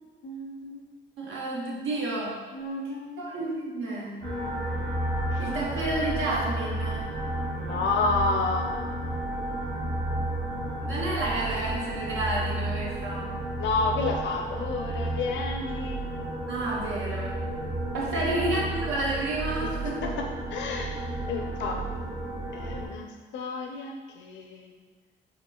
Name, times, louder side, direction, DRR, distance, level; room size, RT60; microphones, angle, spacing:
voice 1, 0.2-0.8 2.5-3.6 5.3-5.4 7.6-8.8 13.6-16.3 18.2-18.4 20.0-21.0 21.3-21.8 22.5-24.7, left 3 dB, 70° left, 2 dB, 0.5 m, -31 dB
voice 2, 1.2-2.5 3.2-4.3 5.4-7.1 10.8-13.4 16.5-17.5 17.9-20.0, right 2 dB, 80° right, -4 dB, 0.9 m, -30 dB
sound 1, 4.2-22.9, right 1 dB, 60° right, 1.3 m, -32 dB
5.0 x 2.4 x 2.3 m, 1.5 s
cardioid pair, 90°, 20 cm